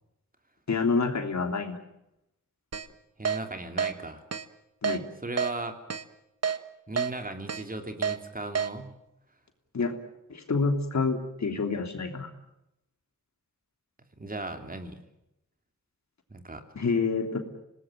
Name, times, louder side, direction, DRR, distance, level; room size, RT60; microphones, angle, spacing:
voice 1, 0.7-1.8 4.8-5.0 9.7-9.9 10.3-12.3 16.7-17.4, left 4 dB, 65° left, 5 dB, 3.1 m, -27 dB
Keyboard (musical), 2.7-2.9 3.3-3.4 3.8-3.9 4.3-4.4 4.8-5.0 5.4-5.5 5.9-6.0 6.4-6.6 7.0-7.1 7.5-7.6 8.0-8.2 8.6-8.7, right 7 dB, 55° right, 1.4 m, -28 dB
voice 2, 3.2-4.2 5.2-5.8 6.9-8.9 14.2-15.0 16.3-16.6, right 2 dB, 30° right, 6 dB, 3.0 m, -36 dB
26.5 x 19.0 x 9.0 m, 0.87 s
wide cardioid pair, 80°, 31 cm